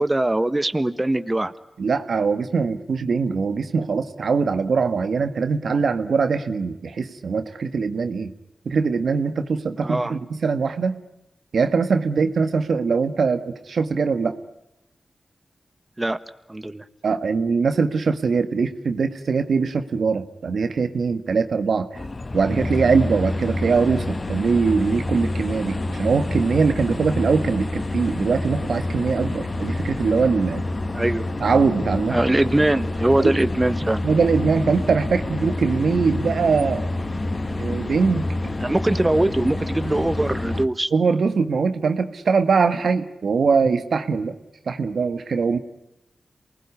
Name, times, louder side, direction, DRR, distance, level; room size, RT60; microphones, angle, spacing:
voice 1, 0.0-1.5 9.8-10.1 16.0-16.2 16.5-16.8 30.9-31.2 32.1-34.0 38.6-40.9, right 1 dB, 25° right, 11 dB, 1.5 m, -22 dB
voice 2, 1.8-8.3 8.6-11.0 11.5-14.4 17.0-21.9 22.3-30.6 31.4-32.2 33.2-33.3 34.0-36.9 37.6-38.5 40.9-44.4 44.7-45.6, right 5 dB, 80° right, 9 dB, 1.7 m, -22 dB
sound 1, 21.9-40.7, left 2 dB, 45° left, 1.5 m, -28 dB
27.5 x 20.5 x 9.9 m, 0.92 s
cardioid pair, 40°, 0 cm